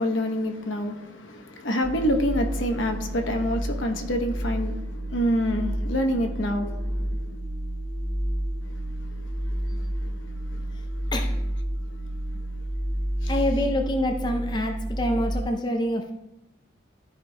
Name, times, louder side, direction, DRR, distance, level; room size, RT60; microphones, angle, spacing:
voice 1, 0.0-7.4 10.0-10.2 10.5-10.6 13.2-13.3, equal, 75° left, 0.9 m, -27 dB
sound 1, 1.8-15.4, right 1 dB, 10° right, 1.6 m, -30 dB
voice 2, 13.3-16.1, left 1 dB, 20° left, 0.5 m, -26 dB
13.5 x 5.2 x 2.2 m
head